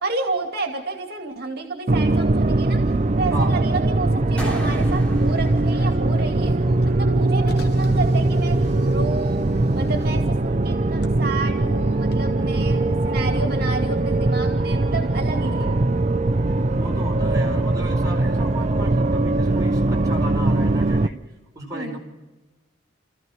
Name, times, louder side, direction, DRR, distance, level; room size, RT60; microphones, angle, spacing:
voice 1, 0.0-2.8 3.2-6.5 6.8-8.6 8.9-15.7 21.7-22.0, right 3 dB, 50° right, 3 dB, 2.5 m, -30 dB
sound 1, 1.9-21.1, right 2 dB, 35° right, 0.6 m, -21 dB
voice 2, 3.3-3.6 15.5-16.1 16.5-21.2 21.5-22.0, right 1 dB, 20° right, -2 dB, 4.9 m, -35 dB
sound 2, 4.4-6.9, equal, 5° left, 3.1 m, -33 dB
Car, 4.5-12.2, left 2 dB, 55° left, 1.1 m, -41 dB
29.5 x 15.0 x 6.2 m, 1.2 s
head